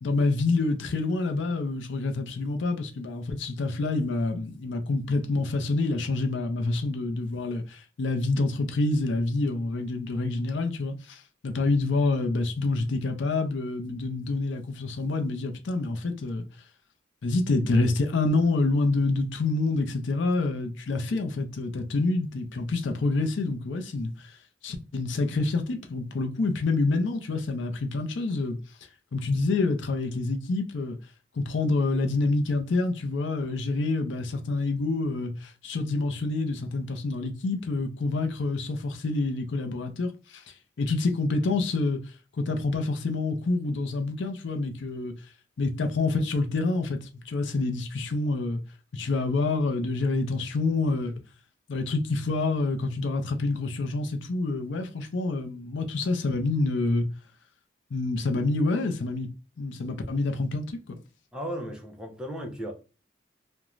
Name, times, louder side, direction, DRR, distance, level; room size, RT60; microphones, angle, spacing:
voice 1, 0.0-16.5 17.2-24.4 24.6-28.6 29.1-31.0 31.4-40.4 40.8-42.0 42.4-45.1 45.6-48.6 48.9-51.1 51.7-57.1 57.9-59.3 59.6-61.0, left 3 dB, 75° left, 0.5 m, -27 dB
voice 2, 61.3-62.7, equal, 5° right, 0.4 m, -35 dB
2.4 x 2.1 x 2.9 m
head